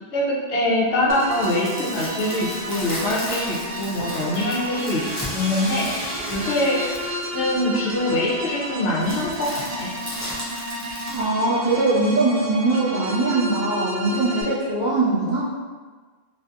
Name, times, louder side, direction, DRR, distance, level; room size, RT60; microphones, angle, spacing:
voice 1, 0.1-5.0 5.3-6.8 7.3-9.9, left 1 dB, 75° left, -4 dB, 0.9 m, -23 dB
sound 1, 1.0-7.2 9.0-11.2, left 1 dB, 30° left, 0.3 m, -35 dB
sound 2, 1.1-14.4, equal, 75° right, 0.8 m, -33 dB
Sawing, 1.9-12.1, equal, 60° left, 1.4 m, -39 dB
voice 2, 11.1-15.4, right 2 dB, 45° right, -9 dB, 0.9 m, -21 dB
2.6 x 2.5 x 2.3 m, 1.4 s
omnidirectional pair, 1.2 m